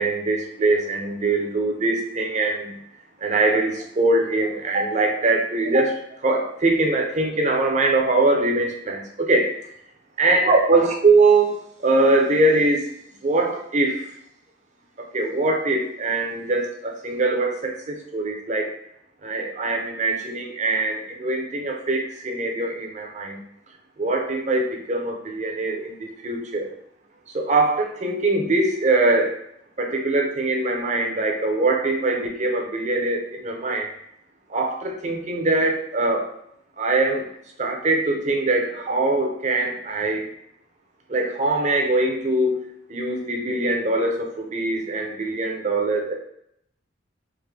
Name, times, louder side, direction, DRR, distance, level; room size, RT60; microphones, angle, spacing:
voice 1, 0.0-2.7 3.2-9.5 10.2-12.9 13.2-14.1 15.0-18.7 19.2-23.4 24.0-26.7 27.3-29.4 29.8-33.9 34.5-36.3 36.8-37.3 37.6-40.3 41.1-42.6 42.9-46.1, right 2 dB, 40° right, 2 dB, 0.7 m, -22 dB
3.6 x 2.6 x 3.3 m, 0.73 s
head